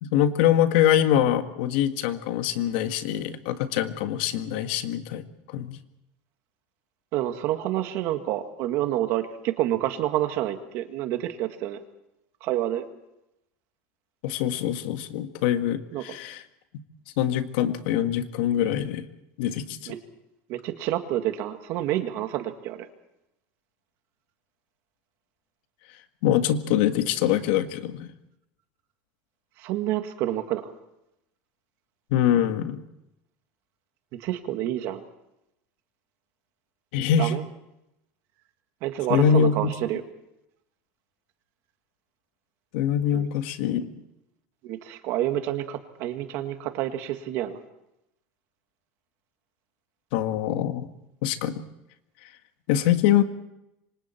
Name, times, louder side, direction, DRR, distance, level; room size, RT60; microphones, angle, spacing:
voice 1, 0.0-5.8 14.2-16.4 17.2-19.0 19.4-19.9 26.2-28.1 32.1-32.8 36.9-37.3 39.1-39.5 42.7-43.9 50.1-50.9 51.2-51.5 52.7-53.2, left 10 dB, 75° left, 8 dB, 1.7 m, -24 dB
voice 2, 7.1-11.8 12.4-12.9 15.9-16.0 19.9-20.0 20.5-22.9 29.6-30.7 34.2-35.0 37.2-37.4 38.8-40.0 43.1-43.3 44.6-47.6, right 13 dB, 50° right, 7 dB, 2.0 m, -28 dB
27.5 x 25.0 x 4.5 m, 0.85 s
cardioid pair, 170°, 6 cm